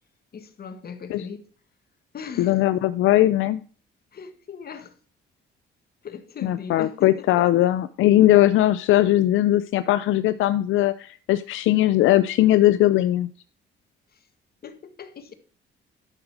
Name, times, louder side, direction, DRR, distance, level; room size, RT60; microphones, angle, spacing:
voice 1, 0.3-1.5 2.1-2.6 4.1-4.9 6.0-7.5 14.1-14.2 14.6-15.3, left 6 dB, 50° left, 1.6 m, -39 dB
voice 2, 2.4-3.6 6.4-13.3, left 14 dB, 85° left, 0.5 m, -19 dB
11.0 x 6.4 x 4.8 m
cardioid pair, 90°, 20 cm